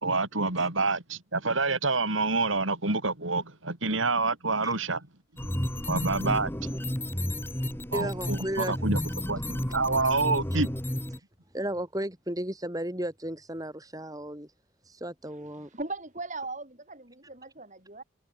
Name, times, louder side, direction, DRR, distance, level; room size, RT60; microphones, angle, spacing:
voice 1, 0.0-5.0 5.9-6.5 7.9-9.0 9.3-10.7, right 3 dB, 85° right, 4.9 m, -27 dB
sound 1, 5.4-11.2, equal, 10° left, 3.2 m, -32 dB
voice 2, 7.9-8.8 11.5-14.5 14.9-15.7, right 1 dB, 20° right, 5.7 m, -34 dB
voice 3, 15.6-18.0, right 3 dB, 40° right, 5.9 m, -39 dB
head